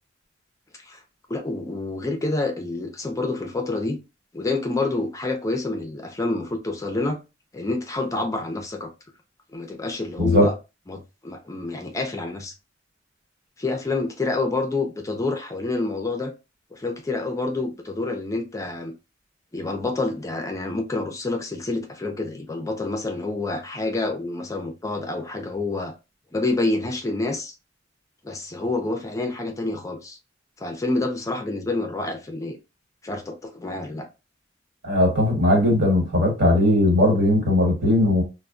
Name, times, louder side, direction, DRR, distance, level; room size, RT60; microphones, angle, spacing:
voice 1, 1.3-4.0 4.3-7.2 7.5-8.9 9.5-10.5 10.9-12.5 13.6-16.3 16.7-18.9 19.5-25.9 26.3-27.5 28.2-30.2 30.6-32.6 33.0-34.1, left 2 dB, 15° left, 0.4 m, -28 dB
voice 2, 34.8-38.2, left 1 dB, 70° right, 1.3 m, -18 dB
2.1 x 2.0 x 3.6 m
head